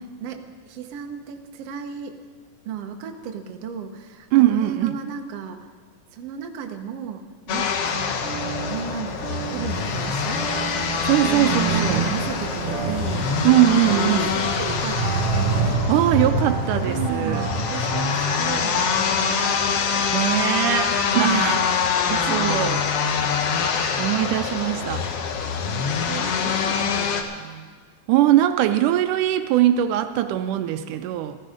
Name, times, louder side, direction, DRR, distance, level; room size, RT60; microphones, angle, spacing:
voice 1, 0.2-2.2 2.7-5.7 6.1-8.3 8.7-10.4 11.3-13.3 13.8-19.6 21.1-21.8 22.1-22.6 25.6-27.7, right 7 dB, 60° right, 5 dB, 1.8 m, -34 dB
voice 2, 4.3-5.0 11.0-12.0 13.4-14.3 15.9-17.5 20.1-21.6 22.0-22.1 22.3-22.8 24.0-25.1 28.1-31.4, right 13 dB, 85° right, 9 dB, 2.1 m, -21 dB
sound 1, 7.5-27.2, left 6 dB, 65° left, 1.6 m, -25 dB
sound 2, 8.2-19.7, right 4 dB, 45° right, 6.1 m, -28 dB
sound 3, 9.7-15.8, equal, 45° left, 2.9 m, -39 dB
15.5 x 14.0 x 5.1 m, 1.5 s
omnidirectional pair, 3.6 m